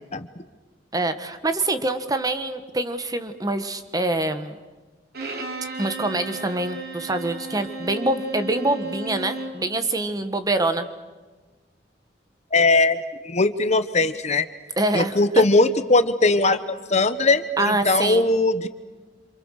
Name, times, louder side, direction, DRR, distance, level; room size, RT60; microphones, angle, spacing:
voice 1, 0.9-4.6 5.8-10.9 14.8-15.4 17.6-18.2, right 2 dB, 20° right, 9 dB, 1.5 m, -25 dB
Bowed string instrument, 5.1-9.6, right 2 dB, 60° right, 3.3 m, -34 dB
voice 2, 12.5-14.5 14.9-16.6 16.9-18.7, left 2 dB, 40° left, 11 dB, 1.1 m, -20 dB
27.5 x 27.5 x 6.6 m, 1.3 s
head